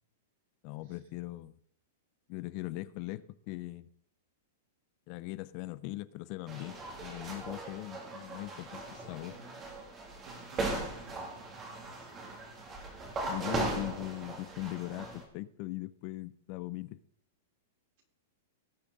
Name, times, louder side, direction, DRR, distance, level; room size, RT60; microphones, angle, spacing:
voice 1, 0.6-1.6 2.3-3.9 5.1-9.3 13.3-17.0, left 19 dB, 45° left, 17 dB, 0.5 m, -40 dB
sound 1, 6.5-15.2, right 2 dB, 25° right, 2.7 m, -39 dB
voice 2, 8.7-9.5 10.2-12.6 13.2-13.9, right 2 dB, 60° right, 1 dB, 3.9 m, -54 dB
18.0 x 7.2 x 3.9 m, 0.70 s
hypercardioid pair, 140°, 0 cm